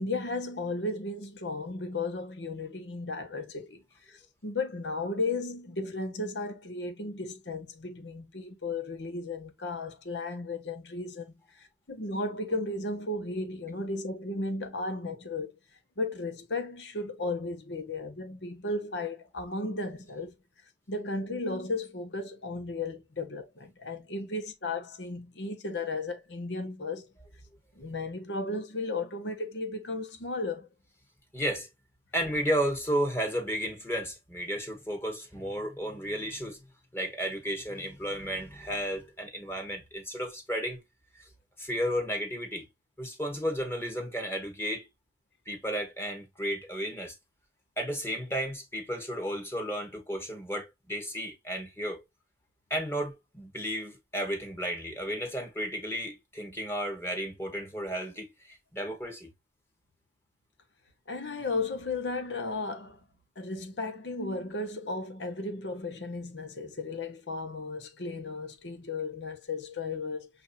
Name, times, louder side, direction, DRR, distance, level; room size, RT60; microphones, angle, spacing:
voice 1, 0.0-3.8 4.1-11.4 11.9-15.5 16.0-20.3 20.9-27.1 27.8-30.7 61.1-63.0 63.4-70.3, left 2 dB, 85° left, 1.0 m, -35 dB
voice 2, 31.3-31.7 32.1-36.6 36.9-40.8 41.6-42.7 43.0-44.9 45.5-47.1 47.8-52.0 52.7-59.3, equal, 15° left, 1.0 m, -33 dB
5.9 x 2.7 x 2.5 m
head